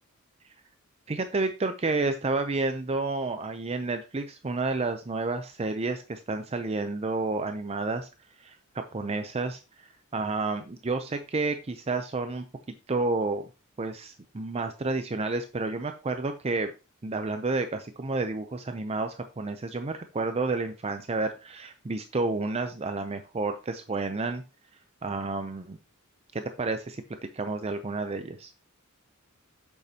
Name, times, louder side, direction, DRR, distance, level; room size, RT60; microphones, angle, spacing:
voice 1, 1.1-8.1 8.4-12.4 12.9-13.5 13.8-16.7 17.0-24.4 25.0-25.8 26.3-27.0 27.3-28.5, right 3 dB, 30° right, 8 dB, 0.5 m, -30 dB
8.3 x 6.7 x 2.9 m, 0.29 s
head